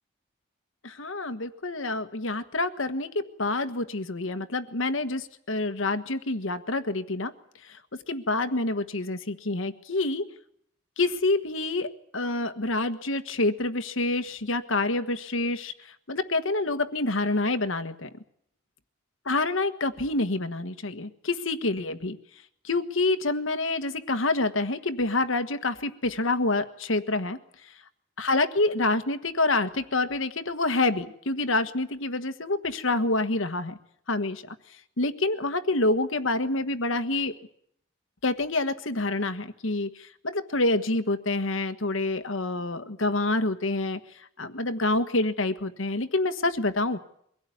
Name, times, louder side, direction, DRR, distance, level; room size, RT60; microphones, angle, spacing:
voice 1, 0.8-7.3 8.1-10.2 11.0-15.7 16.1-18.1 19.2-22.2 22.6-27.4 28.2-33.8 34.1-34.5 35.0-37.3 38.2-44.0 44.4-47.0, left 2 dB, 70° left, 9 dB, 1.5 m, -27 dB
23.5 x 16.5 x 9.4 m, 0.71 s
head